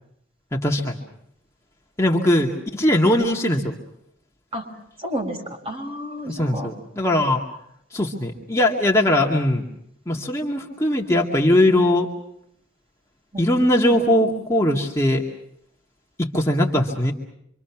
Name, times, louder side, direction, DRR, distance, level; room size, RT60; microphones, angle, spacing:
voice 1, 0.5-1.0 2.0-3.7 6.2-7.4 7.9-9.6 10.1-12.1 13.4-15.2 16.2-17.1, left 1 dB, 15° left, -1 dB, 2.2 m, -20 dB
voice 2, 5.0-6.7 13.3-13.5, equal, 30° right, 2 dB, 5.8 m, -31 dB
26.5 x 26.0 x 6.1 m, 0.73 s
head